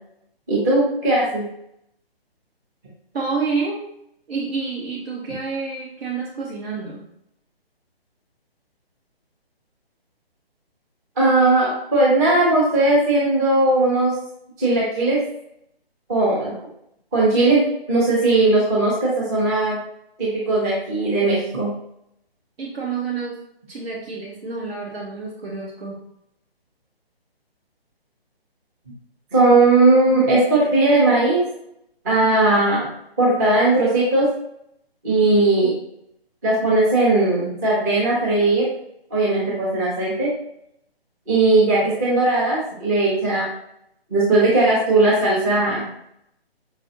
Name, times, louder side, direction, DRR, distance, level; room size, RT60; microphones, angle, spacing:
voice 1, 0.5-1.4 11.2-14.1 14.6-15.2 16.1-16.5 17.1-19.8 20.2-21.7 29.3-31.5 32.0-32.9 33.2-34.3 35.0-35.7 36.4-38.7 39.1-40.3 41.3-43.5 44.1-45.9, right 2 dB, 15° right, -7 dB, 0.7 m, -18 dB
voice 2, 3.1-3.9 4.3-7.0 22.6-23.4 23.7-26.0, right 4 dB, 70° right, -3 dB, 0.9 m, -28 dB
5.0 x 2.4 x 2.6 m, 0.75 s
hypercardioid pair, 155°, 31 cm